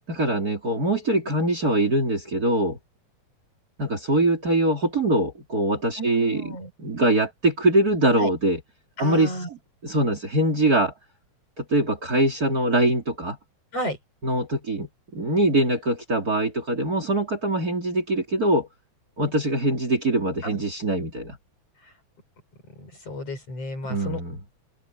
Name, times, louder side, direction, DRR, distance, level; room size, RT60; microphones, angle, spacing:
voice 1, 0.1-2.8 3.8-6.4 6.8-8.6 9.0-9.3 9.8-10.9 11.6-13.4 14.2-18.7 19.2-21.4 23.8-24.4, right 1 dB, 30° right, 3.5 m, -23 dB
voice 2, 6.0-6.7 8.2-8.3 9.0-9.5 13.7-14.0 20.4-20.6 21.8-21.9 22.8-24.2, equal, 55° left, 8.8 m, -32 dB
omnidirectional pair, 3.3 m